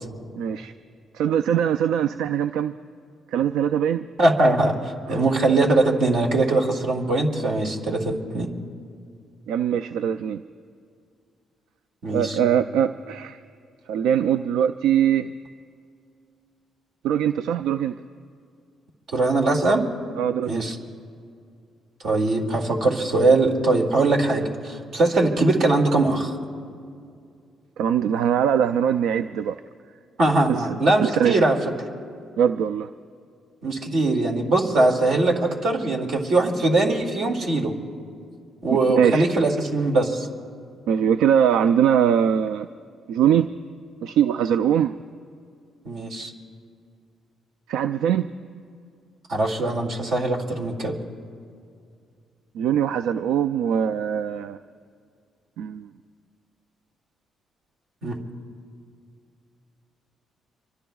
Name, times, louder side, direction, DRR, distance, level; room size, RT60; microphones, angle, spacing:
voice 1, 0.4-0.7 1.1-2.7 3.3-4.1 5.1-5.2 9.5-10.4 12.1-13.4 13.9-15.3 17.0-18.0 20.2-20.7 27.8-29.6 30.5-30.7 31.0-31.3 32.4-32.9 38.7-39.3 40.9-42.7 43.1-43.5 44.0-44.9 47.7-48.3 52.6-54.6 55.6-55.9, right 9 dB, 90° right, 10 dB, 0.3 m, -22 dB
voice 2, 4.2-8.5 12.0-12.4 19.1-19.9 20.5-20.8 22.0-26.4 30.2-31.6 33.6-37.7 38.6-40.3 45.8-46.3 49.3-51.0 58.0-58.2, right 2 dB, 70° right, 1 dB, 2.2 m, -21 dB
25.5 x 24.0 x 2.3 m, 2.3 s
cardioid pair, 90°, 0 cm